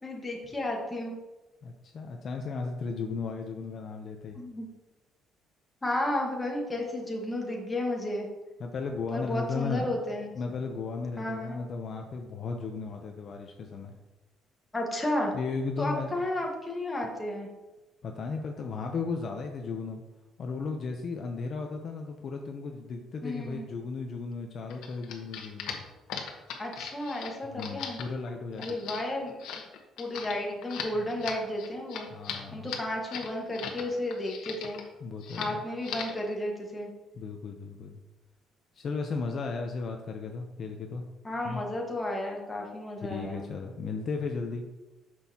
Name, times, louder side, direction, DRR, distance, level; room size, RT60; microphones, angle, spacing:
voice 1, 0.0-1.2 4.3-4.7 5.8-8.3 9.1-10.3 11.2-11.6 14.7-15.3 15.8-17.5 23.2-23.7 26.6-28.0 28.6-29.3 30.0-32.1 32.5-34.8 35.4-36.9 41.2-43.5, left 1 dB, 10° left, -1 dB, 1.4 m, -33 dB
voice 2, 1.6-4.4 8.6-10.0 10.3-14.0 15.3-16.1 18.0-20.0 20.4-25.8 27.5-28.8 32.1-32.7 35.0-35.6 37.1-38.0 38.7-41.0 41.4-41.6 43.0-44.6, left 4 dB, 40° left, 3 dB, 0.6 m, -35 dB
sound 1, 24.7-33.8 34.1-34.9 35.2-35.5 35.8-36.2, left 7 dB, 85° left, 1.1 m, -39 dB
9.4 x 6.2 x 2.8 m, 1.1 s
cardioid pair, 155°, 0 cm